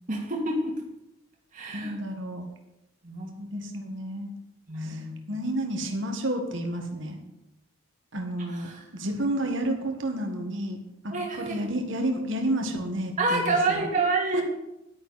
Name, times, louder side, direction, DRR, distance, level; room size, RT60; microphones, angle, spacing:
voice 1, 0.1-0.8 1.5-1.9 3.0-3.4 4.7-5.3 8.5-8.8 11.1-11.8 13.2-14.4, right 3 dB, 35° right, -2 dB, 2.1 m, -28 dB
voice 2, 1.7-2.4 3.4-4.3 4.8-7.2 8.1-10.8 11.0-13.9 14.3-14.4, right 1 dB, 60° right, 3 dB, 1.6 m, -30 dB
11.0 x 9.5 x 4.2 m, 0.92 s
head